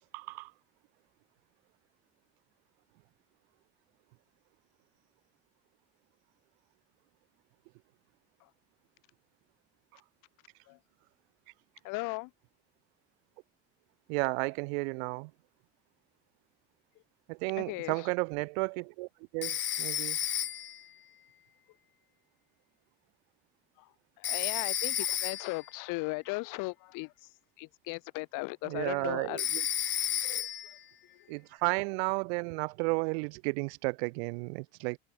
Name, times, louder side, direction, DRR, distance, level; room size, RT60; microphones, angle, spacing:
voice 1, 0.1-0.5 14.1-15.3 17.3-19.1 19.3-20.2 28.7-29.6 31.3-35.0, right 33 dB, 75° right, 0.7 m, -33 dB
voice 2, 11.8-12.3 17.6-18.1 23.8-23.9 24.2-27.3 27.6-29.4 30.2-30.5 31.1-31.3, left 27 dB, 70° left, 3.3 m, -37 dB
Telephone, 19.4-20.8 24.2-25.6 29.4-30.8, left 11 dB, 35° left, 0.7 m, -32 dB
hypercardioid pair, 75°, 33 cm